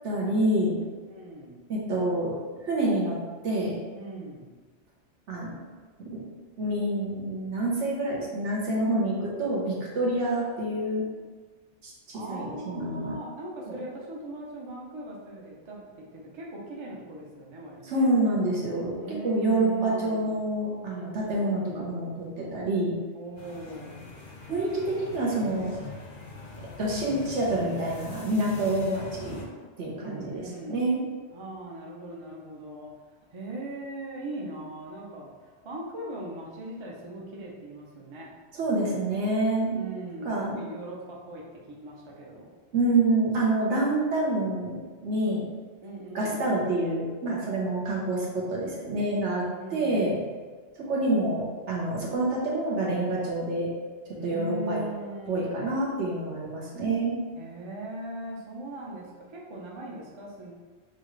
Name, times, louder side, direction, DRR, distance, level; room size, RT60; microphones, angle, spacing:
voice 1, 0.0-0.8 1.7-2.3 2.6-3.2 3.4-3.8 5.3-5.5 6.0-6.2 6.6-11.0 11.8-13.1 13.7-13.8 17.8-18.9 19.2-22.1 22.4-22.9 24.5-25.8 26.8-29.4 29.8-30.4 30.7-31.0 38.5-39.7 40.2-40.6 42.7-45.4 46.1-49.4 49.7-50.1 50.8-53.7 54.2-54.8 55.3-57.2, right 1 dB, 75° right, -4 dB, 1.3 m, -27 dB
voice 2, 1.1-1.6 3.9-4.6 12.1-18.1 19.0-20.3 20.9-21.9 23.1-24.1 30.0-30.9 31.3-32.9 33.3-38.3 39.7-42.5 45.8-46.4 49.5-50.3 54.2-55.8 57.4-60.5, right 1 dB, 30° right, -3 dB, 0.6 m, -40 dB
sound 1, 23.4-29.4, left 3 dB, 50° left, 0.8 m, -43 dB
5.6 x 2.4 x 3.1 m, 1.4 s
omnidirectional pair, 1.2 m